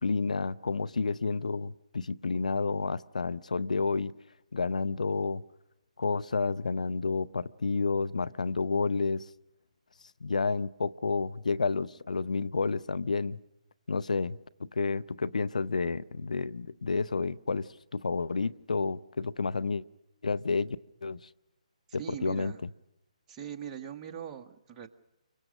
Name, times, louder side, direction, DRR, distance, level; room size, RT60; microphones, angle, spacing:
voice 1, 0.0-4.1 4.5-5.4 6.0-9.3 10.2-13.4 13.9-19.8 20.2-21.3 21.9-22.5, left 4 dB, 80° left, 0.8 m, -30 dB
voice 2, 22.0-22.6 23.3-24.9, right 9 dB, 20° right, 1.5 m, -41 dB
29.0 x 24.5 x 6.5 m
hypercardioid pair, 145°, 4 cm